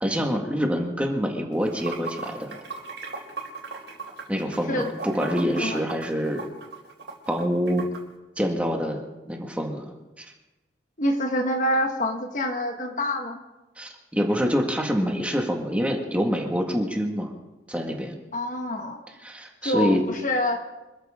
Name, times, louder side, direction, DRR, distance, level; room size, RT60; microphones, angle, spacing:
voice 1, 0.0-2.6 4.3-6.5 7.3-7.9 8.4-9.0 9.3-9.9 10.2-10.3 13.8-17.3 17.7-18.1 19.2-20.0, equal, 5° right, 1 dB, 1.9 m, -26 dB
Water / Sink (filling or washing), 1.5-8.0, right 4 dB, 75° right, 3.9 m, -38 dB
voice 2, 11.0-13.4 18.3-19.0 19.6-20.7, left 1 dB, 45° left, 4 dB, 1.6 m, -26 dB
26.0 x 14.0 x 3.8 m, 1.1 s
head